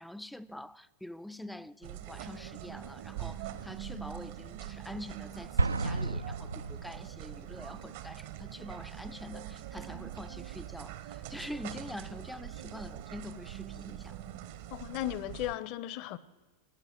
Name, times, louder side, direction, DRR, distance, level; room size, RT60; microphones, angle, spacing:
voice 1, 0.0-14.2, left 1 dB, ahead, 0.5 m, -45 dB
sound 1, 1.8-15.6, right 12 dB, 55° right, 0.9 m, -43 dB
Explosion, 5.6-7.4, right 3 dB, 75° right, 0.4 m, -31 dB
voice 2, 14.7-16.2, left 14 dB, 40° left, 0.8 m, -36 dB
17.0 x 9.7 x 7.9 m
figure-of-eight pair, 90°, 0 cm